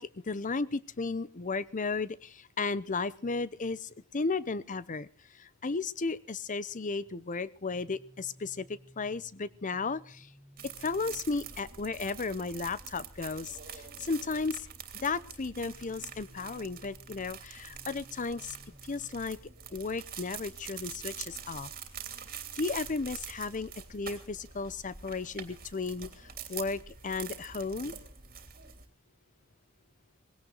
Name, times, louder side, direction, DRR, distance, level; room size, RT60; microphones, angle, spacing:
voice 1, 0.0-10.3 10.8-14.7 14.9-18.6 18.8-19.4 19.7-21.7 22.5-27.9, left 4 dB, 40° left, 18 dB, 0.7 m, -34 dB
sound 1, 7.7-23.7, equal, ahead, 1.0 m, -58 dB
sound 2, 10.6-28.9, right 8 dB, 45° right, 3.0 m, -45 dB
20.5 x 17.0 x 4.0 m, 0.42 s
head